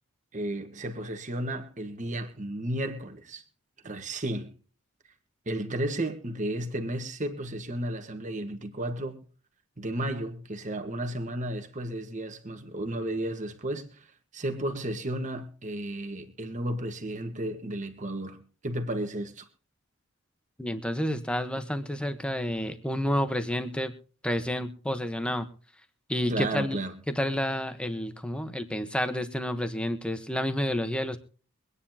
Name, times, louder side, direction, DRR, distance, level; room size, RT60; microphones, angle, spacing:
voice 1, 0.3-3.4 3.8-4.5 5.4-9.2 9.8-19.5 26.3-27.0, right 1 dB, 35° right, 1.6 m, -33 dB
voice 2, 20.6-23.9 24.2-25.5 26.1-26.8 27.1-31.2, equal, 5° left, 1.1 m, -30 dB
24.0 x 9.8 x 2.9 m
head